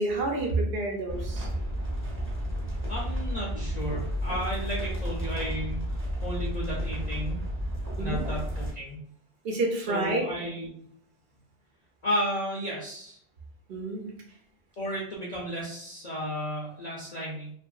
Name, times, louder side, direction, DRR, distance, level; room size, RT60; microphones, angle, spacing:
voice 1, 0.0-1.5 8.0-8.2 9.4-10.2 13.7-14.1, right 2 dB, 65° right, 1 dB, 0.8 m, -29 dB
sound 1, 1.1-8.7, equal, 15° right, 0.6 m, -32 dB
voice 2, 2.9-7.4 8.0-9.0 9.9-10.7 12.0-13.2 14.8-17.5, equal, 50° left, -4 dB, 0.6 m, -33 dB
2.7 x 2.5 x 2.3 m, 0.65 s
omnidirectional pair, 1.2 m